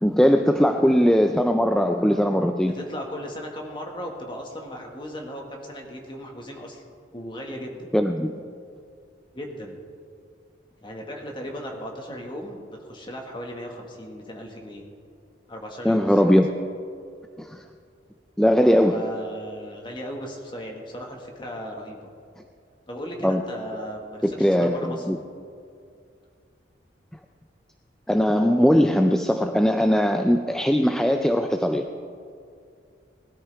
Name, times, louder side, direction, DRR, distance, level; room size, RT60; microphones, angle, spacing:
voice 1, 0.0-2.7 7.9-8.3 15.8-16.5 17.4-17.6 18.4-19.0 23.2-23.4 24.2-25.2 28.1-31.8, equal, 5° left, 5 dB, 0.3 m, -20 dB
voice 2, 2.7-6.8 7.1-7.9 9.3-9.8 10.8-14.8 15.5-16.3 18.9-22.1 22.9-25.1, equal, 25° left, 1 dB, 1.6 m, -36 dB
19.5 x 12.5 x 3.4 m, 2.3 s
head